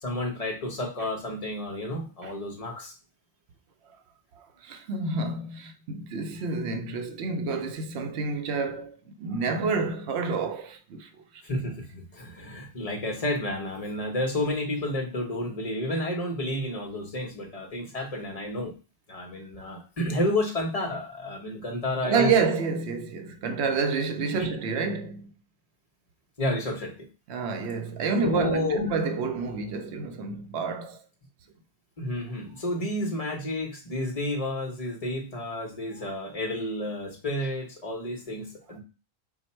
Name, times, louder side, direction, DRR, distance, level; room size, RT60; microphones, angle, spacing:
voice 1, 0.0-2.9 11.4-18.7 19.1-22.3 24.3-24.5 26.4-27.1 28.2-28.9 32.0-38.8, left 1 dB, 35° left, 1.0 m, -31 dB
voice 2, 4.3-11.1 22.0-25.3 27.3-31.0, right 4 dB, 90° right, 0.9 m, -29 dB
4.7 x 2.2 x 4.2 m
omnidirectional pair, 1.1 m